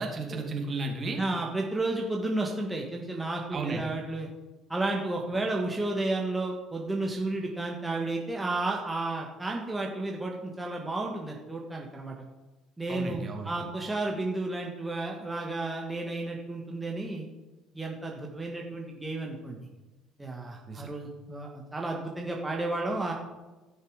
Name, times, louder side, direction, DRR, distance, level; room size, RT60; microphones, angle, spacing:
voice 1, 0.0-1.2 3.5-3.8 12.9-13.5 20.7-20.9, right 3 dB, 35° right, 2 dB, 2.4 m, -33 dB
voice 2, 1.2-4.3 4.7-12.2 12.8-17.3 17.7-19.6 20.2-23.1, right 2 dB, 10° right, -1 dB, 1.7 m, -32 dB
14.5 x 6.6 x 5.0 m, 1.2 s
hypercardioid pair, 60°, 0 cm